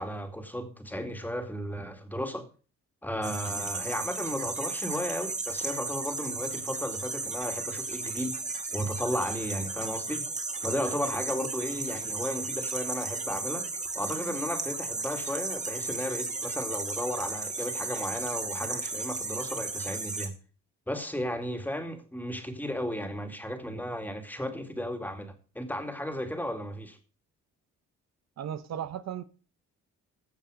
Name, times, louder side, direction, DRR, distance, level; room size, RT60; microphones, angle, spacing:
voice 1, 0.0-2.5 3.0-8.4 8.7-10.3 10.6-13.7 13.9-20.3 20.9-27.0, equal, 5° left, 2.4 m, -34 dB
sound 1, 3.2-20.3, right 3 dB, 25° right, 2.3 m, -34 dB
voice 2, 28.4-29.2, right 9 dB, 60° right, 0.8 m, -35 dB
15.5 x 6.8 x 5.0 m
cardioid pair, 90°, 30 cm